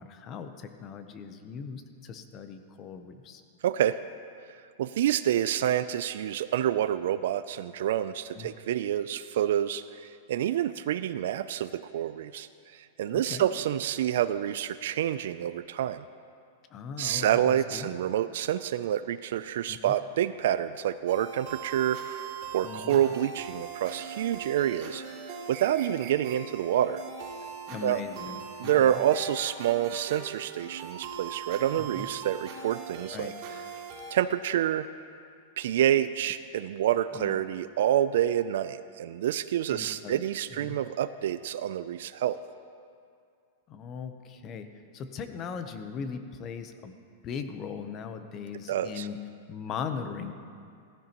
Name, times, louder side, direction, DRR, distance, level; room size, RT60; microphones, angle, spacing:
voice 1, 0.0-3.4 8.3-8.5 13.1-13.5 16.7-17.9 19.7-20.0 22.6-23.0 27.7-29.0 31.8-32.1 33.1-33.3 37.1-37.4 39.7-40.2 40.5-40.8 43.7-47.0 47.2-49.2 49.5-50.3, left 6 dB, 30° left, 8 dB, 0.7 m, -39 dB
voice 2, 3.6-4.0 4.8-12.5 12.7-16.1 17.0-27.0 27.8-28.0 28.6-33.3 34.1-34.9 35.6-42.4 48.7-49.1, right 11 dB, 70° right, 13 dB, 0.3 m, -28 dB
sound 1, 21.1-34.1, right 6 dB, 50° right, 2.3 m, -41 dB
15.0 x 14.5 x 3.0 m, 2.3 s
supercardioid pair, 150°, 0 cm